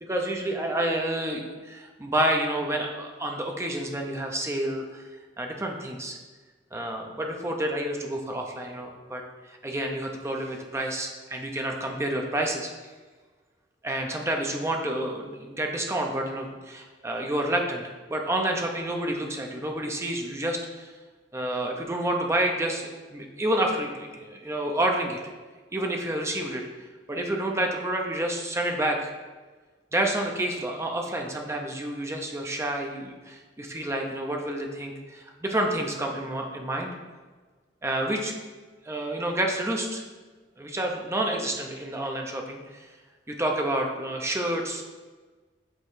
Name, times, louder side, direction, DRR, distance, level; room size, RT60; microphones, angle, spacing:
voice 1, 0.0-5.1 5.4-6.2 6.7-12.7 13.8-20.9 21.3-25.2 25.7-29.1 29.9-36.9 37.8-38.3 38.8-40.0 40.6-42.9 43.3-44.8, right 1 dB, 15° right, 2 dB, 0.7 m, -29 dB
8.0 x 3.7 x 3.7 m, 1.4 s
head